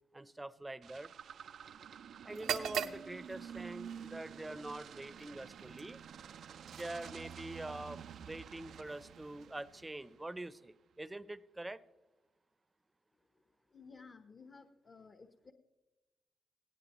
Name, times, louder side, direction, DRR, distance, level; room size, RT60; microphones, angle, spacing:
voice 1, 0.1-1.1 2.2-6.0 6.7-11.8, right 2 dB, 15° right, 16 dB, 0.6 m, -45 dB
sound 1, 0.8-10.3, right 8 dB, 70° right, 0.4 m, -50 dB
sound 2, 2.3-10.1, right 8 dB, 90° right, 0.8 m, -45 dB
voice 2, 13.7-15.5, left 4 dB, 45° left, 7 dB, 1.0 m, -56 dB
18.0 x 17.0 x 3.0 m, 1.1 s
cardioid pair, 75°, 0 cm